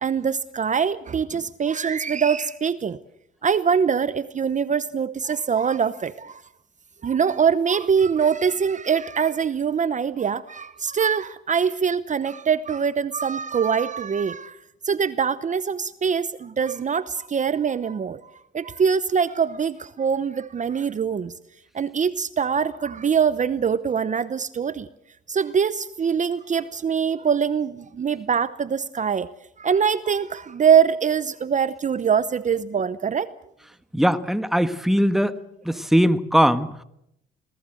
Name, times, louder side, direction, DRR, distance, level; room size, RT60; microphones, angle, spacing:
voice 1, 0.0-3.0 3.4-6.4 7.0-14.6 14.8-18.2 18.5-21.3 21.7-24.9 25.3-29.3 29.6-33.3, right 7 dB, 40° right, 15 dB, 0.8 m, -23 dB
voice 2, 33.9-35.4 35.6-36.8, equal, ahead, 11 dB, 1.4 m, -20 dB
26.5 x 18.5 x 7.8 m, 0.79 s
cardioid pair, 90°, 20 cm